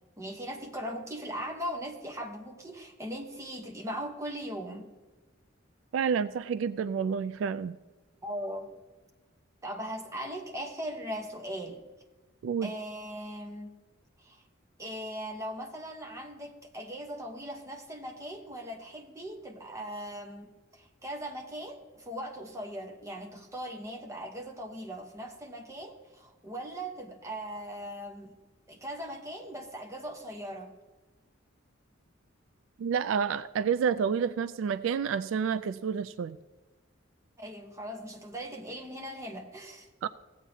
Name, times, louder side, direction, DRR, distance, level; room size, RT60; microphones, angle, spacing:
voice 1, 0.2-4.9 8.2-8.7 9.6-11.8 12.6-13.7 14.2-14.4 14.8-28.4 28.7-30.7 37.4-39.9, equal, 15° right, 2 dB, 1.1 m, -39 dB
voice 2, 5.9-7.8 12.4-12.7 32.8-36.4 40.0-40.1, right 6 dB, 70° right, 15 dB, 0.3 m, -29 dB
16.0 x 8.1 x 2.8 m, 1.3 s
head